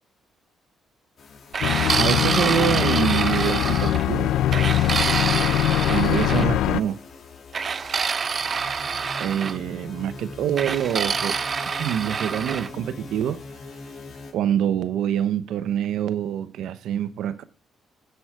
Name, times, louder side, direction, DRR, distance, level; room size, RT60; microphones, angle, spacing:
sound 1, 1.2-14.3, left 3 dB, 55° left, 2.3 m, -42 dB
sound 2, 1.5-4.0 4.5-6.5 7.5-9.6 10.6-12.7, right 5 dB, 45° right, 0.5 m, -26 dB
sound 3, 1.6-6.8, left 12 dB, 85° left, 0.4 m, -22 dB
voice 1, 1.9-4.3 5.9-7.0 9.2-11.4 11.8-13.4 14.3-17.4, right 10 dB, 80° right, 0.8 m, -25 dB
9.4 x 8.0 x 4.8 m
cardioid pair, 90°, 0 cm